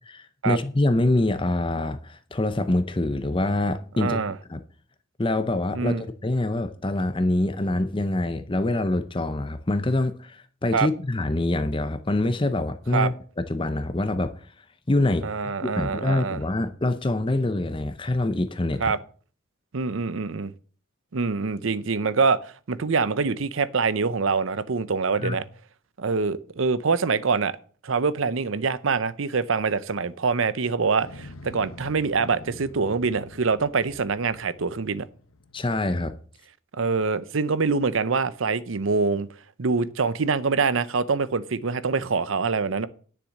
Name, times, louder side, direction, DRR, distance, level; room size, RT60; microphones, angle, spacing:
voice 1, 0.4-4.2 4.5-4.6 5.2-14.3 14.9-18.9 25.2-25.4 35.5-36.1, left 2 dB, 25° left, 0.6 m, -25 dB
voice 2, 4.0-4.3 5.7-6.0 10.7-10.9 12.9-13.1 15.2-16.4 18.8-19.0 19.7-20.5 21.1-25.4 26.0-27.6 27.8-35.1 36.8-39.3 39.6-42.9, right 4 dB, 70° right, 0.7 m, -25 dB
Motorcycle, 31.0-36.2, left 2 dB, 85° left, 1.1 m, -46 dB
10.0 x 6.9 x 6.4 m
head